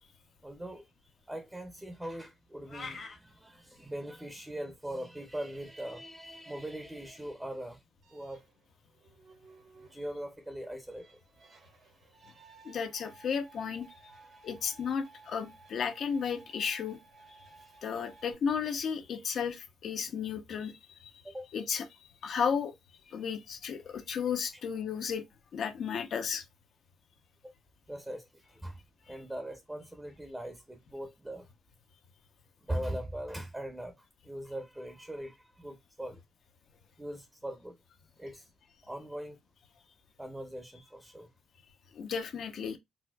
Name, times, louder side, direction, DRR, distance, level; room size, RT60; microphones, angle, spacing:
voice 1, 0.4-0.9 1.3-7.8 8.1-8.4 9.8-11.1 12.2-12.3 14.1-14.4 21.2-21.5 27.4-27.5 27.9-28.8 29.1-31.5 32.7-36.2 37.0-37.8 38.2-38.5 38.8-39.4 40.2-41.3, right 1 dB, 10° right, 0.7 m, -41 dB
sound 1, 2.7-3.2, left 4 dB, 45° left, 1.0 m, -42 dB
sound 2, 8.0-18.3, right 3 dB, 55° right, 1.1 m, -58 dB
voice 2, 12.6-13.9 14.4-17.0 17.8-21.1 21.5-22.7 23.1-25.2 25.5-26.4 41.9-42.8, left 6 dB, 65° left, 0.7 m, -34 dB
4.1 x 2.1 x 2.3 m
cardioid pair, 90°, 0 cm